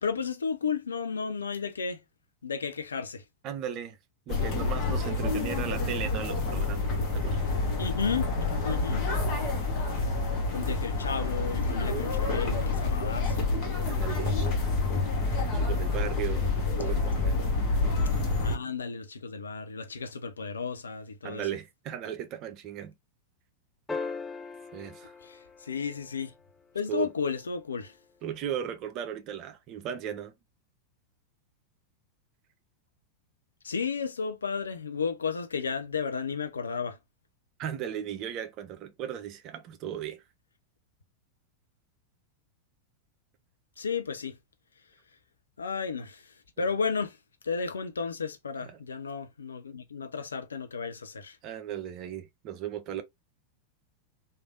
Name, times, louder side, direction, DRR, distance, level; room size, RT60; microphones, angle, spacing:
voice 1, 0.0-2.0 2.4-3.2 7.8-8.3 8.6-9.0 10.5-13.5 18.4-21.4 25.7-26.3 26.7-27.9 33.6-36.9 43.8-44.3 45.6-46.1 46.6-47.1 47.5-51.3, left 5 dB, 70° left, 0.5 m, -33 dB
voice 2, 3.4-4.0 4.3-7.4 13.9-14.4 15.5-17.5 21.2-22.9 24.7-25.1 26.9-27.1 28.2-30.3 37.6-40.2 46.6-46.7 48.6-48.8 51.4-53.0, right 9 dB, 40° right, 0.6 m, -36 dB
sound 1, 4.3-18.6, left 3 dB, 40° left, 1.2 m, -28 dB
sound 2, 23.9-26.4 28.6-28.7, left 4 dB, 10° left, 0.3 m, -39 dB
3.3 x 2.5 x 2.3 m
figure-of-eight pair, 90°, 0 cm